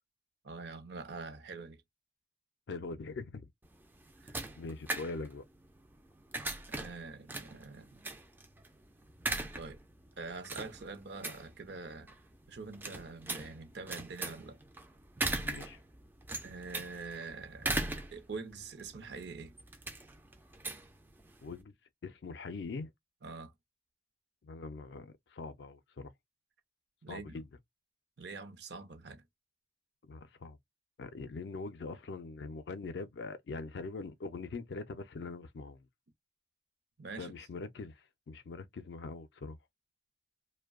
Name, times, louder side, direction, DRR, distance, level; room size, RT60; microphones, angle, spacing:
voice 1, 0.4-1.8 4.2-4.4 6.7-8.1 9.6-9.8 10.2-12.1 12.5-14.6 16.4-19.5 23.2-23.5 27.0-27.4 28.2-29.2 37.0-37.3, right 4 dB, 60° right, 0.6 m, -45 dB
voice 2, 2.7-3.5 4.6-5.4 15.4-15.8 21.4-21.7 22.0-22.9 24.4-26.1 27.1-27.4 30.1-30.6 31.0-35.8 37.2-39.6, left 3 dB, 65° left, 0.4 m, -42 dB
sound 1, 3.6-21.6, right 2 dB, 10° right, 0.3 m, -40 dB
2.6 x 2.1 x 2.3 m
head